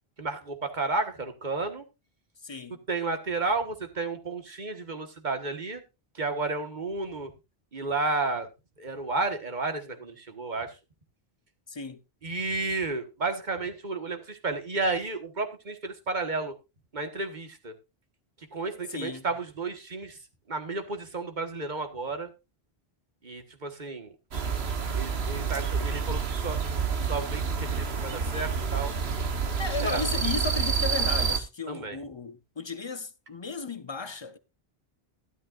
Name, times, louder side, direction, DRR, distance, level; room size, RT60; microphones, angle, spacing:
voice 1, 0.2-1.9 2.9-5.8 6.1-7.3 7.7-8.5 8.8-10.8 12.2-16.6 16.9-17.7 18.4-20.2 20.5-22.3 23.2-24.1 24.9-26.6 27.1-28.9 29.8-30.1 31.7-32.0, right 3 dB, 50° right, 1.6 m, -32 dB
voice 2, 2.4-2.8 11.7-12.0 18.9-19.2 29.6-34.4, left 5 dB, 30° left, 0.8 m, -35 dB
sound 1, 24.3-31.4, right 5 dB, 85° right, 1.5 m, -28 dB
12.5 x 12.0 x 2.5 m
omnidirectional pair, 1.0 m